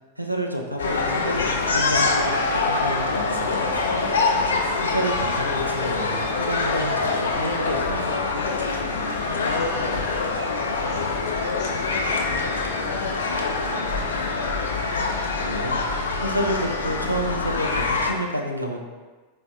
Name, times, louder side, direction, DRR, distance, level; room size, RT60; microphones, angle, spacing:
voice 1, 0.2-4.1 4.8-8.2 15.4-15.8 16.2-18.8, right 1 dB, 90° right, 2 dB, 0.3 m, -29 dB
sound 1, 0.8-18.1, left 3 dB, 65° left, 0.3 m, -25 dB
voice 2, 8.8-14.6, left 2 dB, 35° left, -5 dB, 1.0 m, -41 dB
4.1 x 2.5 x 2.3 m, 1.4 s
figure-of-eight pair, 90°, 0 cm